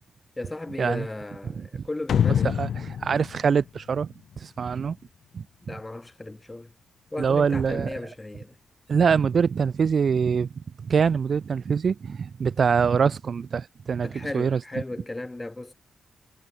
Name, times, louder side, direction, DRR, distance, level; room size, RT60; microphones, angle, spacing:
voice 1, 0.4-2.5 5.6-6.7 7.1-8.5 14.0-15.7, left 2 dB, 15° left, 2.3 m, -35 dB
sound 1, 2.1-4.6, left 8 dB, 75° left, 1.1 m, -26 dB
voice 2, 2.5-5.0 5.3-5.4 7.2-7.9 8.9-10.5 10.8-14.6, right 6 dB, 50° right, 0.7 m, -24 dB
wide cardioid pair, 120°, 0 cm